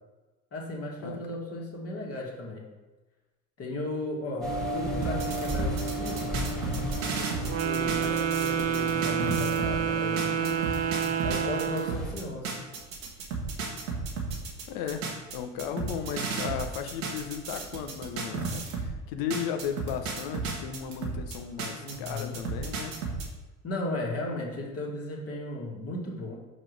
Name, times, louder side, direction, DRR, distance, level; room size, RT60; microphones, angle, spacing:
voice 1, 0.5-2.7 3.6-6.4 7.1-10.6 11.2-12.5 21.8-22.3 23.6-26.4, left 2 dB, 35° left, -2 dB, 2.1 m, -35 dB
sound 1, 4.4-12.1, right 1 dB, ahead, 2.0 m, -34 dB
sound 2, 5.0-9.8 10.2-18.9 19.3-23.3, right 4 dB, 80° right, 1.3 m, -34 dB
Wind instrument woodwind instrument, 7.4-12.1, right 8 dB, 35° right, 0.6 m, -28 dB
voice 2, 14.7-15.1 15.3-23.0, left 8 dB, 55° left, 7 dB, 0.9 m, -35 dB
5.8 x 5.0 x 4.8 m, 1.2 s
figure-of-eight pair, 65°, 40 cm